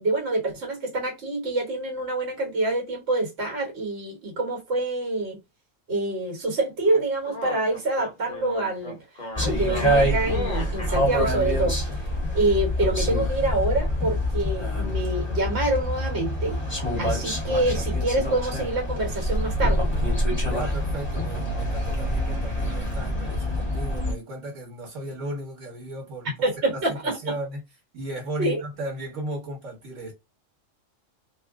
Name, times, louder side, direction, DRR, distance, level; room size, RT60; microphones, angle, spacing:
voice 1, 0.0-5.4 5.9-9.0 9.4-11.8 12.3-16.6 17.0-19.9 26.4-27.1 28.4-28.6, right 2 dB, 60° right, 1.5 m, -26 dB
sound 1, 6.8-10.9, left 1 dB, 40° left, 1.1 m, -36 dB
sound 2, 9.3-24.1, equal, 10° left, 1.7 m, -26 dB
voice 2, 20.5-26.3 26.7-27.6 27.9-30.1, right 1 dB, 75° right, 1.5 m, -35 dB
3.0 x 2.5 x 3.5 m
omnidirectional pair, 1.3 m